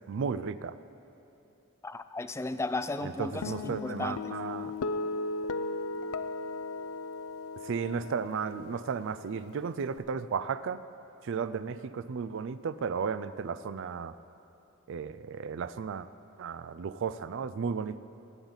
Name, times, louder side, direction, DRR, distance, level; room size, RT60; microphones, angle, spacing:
voice 1, 0.1-0.8 3.0-4.7 7.6-10.8 11.2-14.1 14.9-16.1 16.4-18.0, right 6 dB, 60° right, 14 dB, 0.4 m, -34 dB
voice 2, 1.8-4.3, left 2 dB, 15° left, 11 dB, 0.3 m, -35 dB
Guitar, 3.4-10.0, left 3 dB, 80° left, 0.5 m, -37 dB
20.5 x 8.8 x 4.0 m, 2.8 s
head